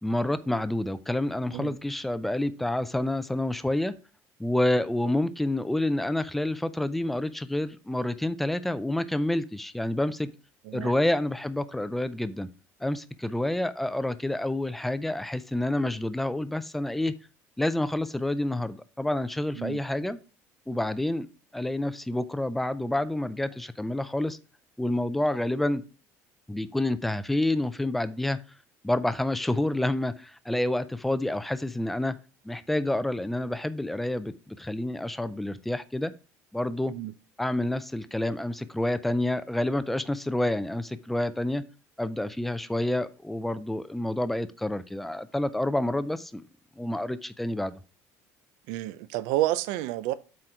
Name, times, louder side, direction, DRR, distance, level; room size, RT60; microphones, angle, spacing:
voice 1, 0.0-4.0 4.4-10.3 10.7-12.5 12.8-17.1 17.6-20.2 20.7-21.3 21.5-24.4 24.8-25.8 26.5-28.4 28.8-32.2 32.4-36.1 36.5-36.9 37.4-41.6 42.0-46.4 46.8-47.8, left 1 dB, 5° left, 0.4 m, -28 dB
voice 2, 48.7-50.1, right 15 dB, 75° right, 0.6 m, -29 dB
7.8 x 4.5 x 4.9 m
cardioid pair, 175°, 6 cm